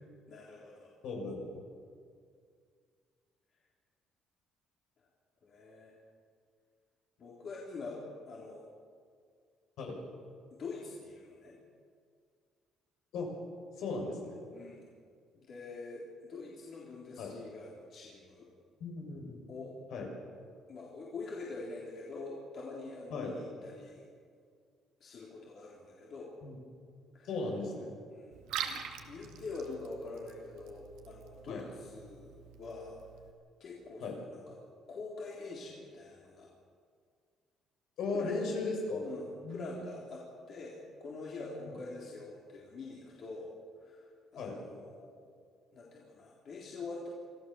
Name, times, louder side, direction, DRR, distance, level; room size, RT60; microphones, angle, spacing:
voice 1, 0.3-0.9 5.4-6.0 7.2-8.7 10.5-11.6 14.5-14.8 15.3-18.5 19.5-19.7 20.7-24.0 25.0-26.3 27.1-27.3 28.1-28.4 28.7-33.0 33.6-34.6 34.9-36.5 38.1-38.4 39.0-43.5 43.8-44.1 44.3-45.3 45.7-47.1, left 3 dB, 50° left, -4 dB, 3.8 m, -45 dB
voice 2, 1.0-1.5 9.8-10.1 13.1-13.3 13.8-14.4 17.2-17.3 18.8-19.4 19.9-20.1 23.1-23.3 26.4-26.6 27.3-27.9 31.5-31.6 34.0-34.1 38.0-39.1 39.4-39.8 44.4-44.6, left 3 dB, 75° left, 0 dB, 6.4 m, -36 dB
Liquid, 28.3-33.3, right 8 dB, 90° right, 2.1 m, -44 dB
26.0 x 15.5 x 7.2 m, 2.1 s
cardioid pair, 125°, 0 cm